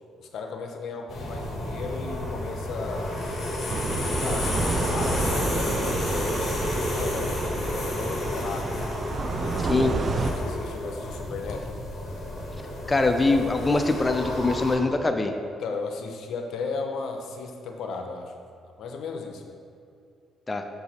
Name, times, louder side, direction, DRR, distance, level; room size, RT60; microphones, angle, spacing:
voice 1, 0.2-3.4 3.9-4.5 4.9-8.7 9.4-11.8 15.6-18.3 18.8-19.6, left 4 dB, 75° left, 4 dB, 0.7 m, -36 dB
sound 1, 1.1-14.8, left 1 dB, 55° left, 1.5 m, -31 dB
sound 2, 3.7-10.3, right 3 dB, 45° right, 0.5 m, -30 dB
voice 2, 12.9-15.3 20.5-20.6, left 3 dB, 20° left, 6 dB, 0.4 m, -23 dB
6.5 x 4.7 x 4.1 m, 2.4 s
cardioid pair, 90°, 0 cm